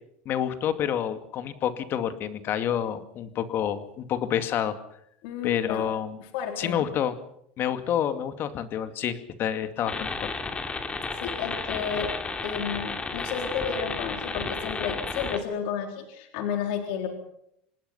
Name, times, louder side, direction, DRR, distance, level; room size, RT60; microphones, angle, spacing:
voice 1, 0.3-4.8 5.4-6.2 6.6-7.1 7.6-10.3, left 9 dB, 45° left, 9 dB, 2.3 m, -28 dB
voice 2, 5.2-5.9 6.2-6.9 11.1-12.1 12.4-17.1, left 7 dB, 70° left, 4 dB, 4.0 m, -32 dB
sound 1, 9.9-15.4, left 4 dB, 20° left, 2.8 m, -32 dB
26.5 x 19.5 x 5.7 m, 0.72 s
supercardioid pair, 120°, 5 cm